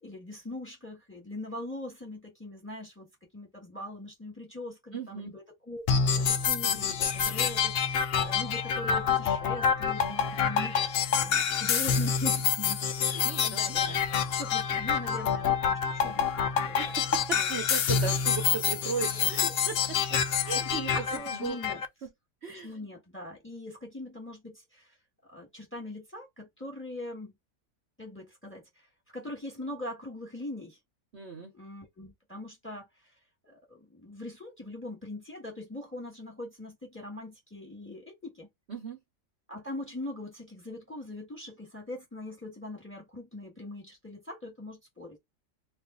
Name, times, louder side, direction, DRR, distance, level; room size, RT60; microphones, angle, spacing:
voice 1, 0.0-10.8 11.1-16.3 16.7-16.9 17.4-17.5 18.9-19.3 20.7-21.8 22.5-24.9 25.3-27.3 28.0-28.9 29.1-30.8 31.5-32.9 33.4-38.5 39.5-45.2, left 1 dB, 10° left, 1.3 m, -41 dB
voice 2, 4.9-5.3 13.2-14.0 16.8-21.6 22.0-22.1 22.4-22.8 31.1-31.5 38.7-39.0, right 5 dB, 50° right, 0.9 m, -37 dB
sound 1, 5.9-21.9, left 7 dB, 80° left, 0.5 m, -27 dB
2.5 x 2.5 x 3.7 m
omnidirectional pair, 1.6 m